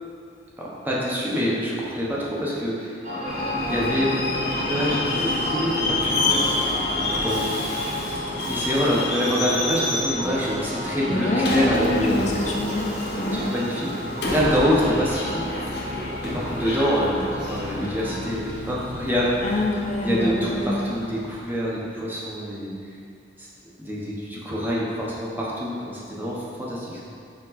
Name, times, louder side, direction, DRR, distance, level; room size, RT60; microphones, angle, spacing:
voice 1, 0.6-3.0 3.7-6.5 6.8-7.4 8.5-12.6 13.3-15.5 16.2-19.4 20.0-22.7 23.4-23.5 23.8-27.0, equal, 10° right, -6 dB, 1.0 m, -26 dB
sound 1, 3.0-18.3, left 1 dB, 40° right, 1.0 m, -32 dB
Subway metro underground, 3.2-21.7, left 2 dB, 65° left, 0.9 m, -29 dB
voice 2, 11.1-13.4 19.4-20.8, left 1 dB, 40° left, -1 dB, 0.7 m, -25 dB
5.2 x 4.9 x 4.1 m, 2.4 s
head